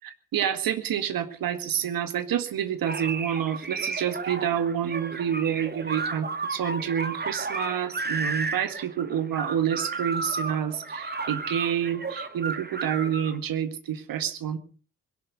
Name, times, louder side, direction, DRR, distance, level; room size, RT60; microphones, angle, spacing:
voice 1, 0.0-14.6, right 9 dB, 50° right, 10 dB, 1.9 m, -28 dB
sound 1, 2.9-13.4, right 3 dB, 25° right, 2.2 m, -33 dB
21.5 x 12.0 x 5.3 m, 0.42 s
figure-of-eight pair, 40°, 43 cm